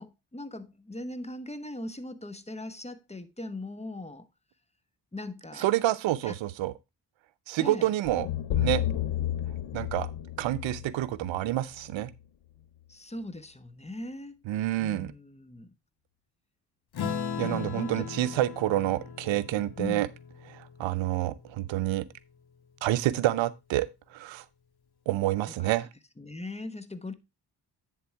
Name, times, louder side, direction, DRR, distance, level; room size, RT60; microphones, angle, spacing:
voice 1, 0.0-4.3 5.1-5.7 6.2-6.4 7.6-7.9 12.9-14.4 14.8-15.7 17.4-17.9 19.8-20.1 25.6-25.7 26.2-27.1, left 1 dB, 15° left, 1.1 m, -39 dB
voice 2, 5.6-6.7 7.5-8.3 8.5-8.8 9.7-10.1 10.4-12.1 14.5-15.1 17.4-20.1 20.5-22.1 22.8-24.4 25.1-25.9, right 14 dB, 85° right, 0.6 m, -28 dB
sound 1, 8.1-12.2, left 12 dB, 85° left, 0.8 m, -32 dB
Acoustic guitar / Strum, 16.9-21.8, left 6 dB, 60° left, 1.4 m, -38 dB
10.5 x 3.7 x 4.5 m
supercardioid pair, 50°, 44 cm